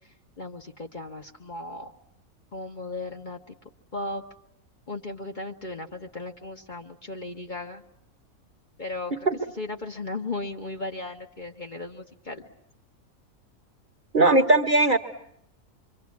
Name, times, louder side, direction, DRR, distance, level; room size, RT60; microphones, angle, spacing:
voice 1, 0.4-1.9 2.5-3.4 3.9-4.2 4.9-7.8 8.8-9.1 9.6-12.4, left 2 dB, 35° left, 3 dB, 1.4 m, -36 dB
voice 2, 14.1-15.0, right 2 dB, 35° right, 7 dB, 1.4 m, -19 dB
26.0 x 24.5 x 8.5 m, 0.75 s
omnidirectional pair, 1.5 m